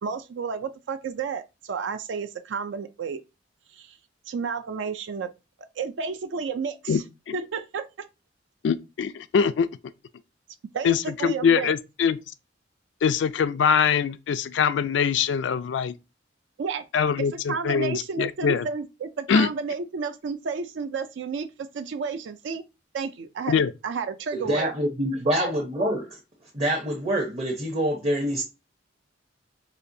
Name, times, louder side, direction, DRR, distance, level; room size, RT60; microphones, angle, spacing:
voice 1, 0.0-3.2 3.7-4.0 4.3-5.3 5.8-7.0 7.3-7.9 10.7-11.7 16.6-16.8 17.2-22.6 22.9-24.7, right 5 dB, 75° right, 0.4 m, -31 dB
voice 2, 8.6-9.7 10.8-12.2 13.0-15.9 16.9-18.7 19.3-19.5 23.5-23.7, left 6 dB, 70° left, 0.3 m, -23 dB
voice 3, 24.3-26.2 26.5-28.4, right 1 dB, 30° right, 0.7 m, -26 dB
4.2 x 2.9 x 2.6 m
head